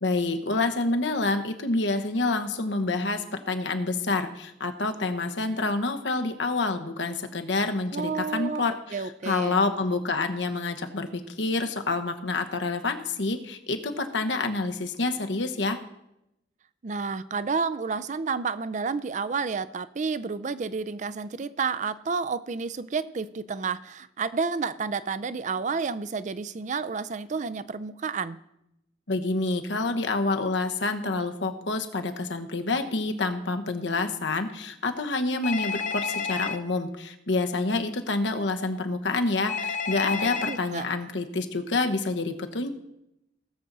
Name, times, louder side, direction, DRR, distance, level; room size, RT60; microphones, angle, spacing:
voice 1, 0.0-9.0 9.2-15.8 29.1-42.7, left 3 dB, 85° left, 6 dB, 1.1 m, -28 dB
voice 2, 7.9-8.7 8.9-9.6 16.8-28.4 40.1-40.9, right 5 dB, 40° right, 15 dB, 0.4 m, -30 dB
Telephone, 35.4-36.6 39.5-40.6, left 6 dB, 45° left, 0.9 m, -30 dB
18.5 x 7.4 x 4.0 m, 0.83 s
head